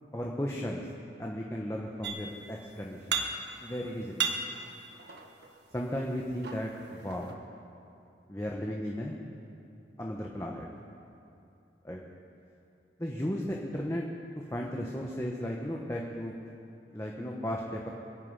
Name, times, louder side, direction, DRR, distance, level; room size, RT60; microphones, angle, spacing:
voice 1, 0.1-0.8 1.2-3.2 3.6-4.3 5.7-7.3 8.3-9.1 10.0-10.7 11.8-12.0 13.0-14.0 14.4-16.3 16.9-17.9, equal, 15° left, -1 dB, 1.1 m, -35 dB
sound 1, 2.0-2.6 2.8-3.7 4.0-5.6 6.2-7.3, right 5 dB, 65° right, 1.4 m, -35 dB
27.5 x 9.5 x 5.6 m, 2.7 s
head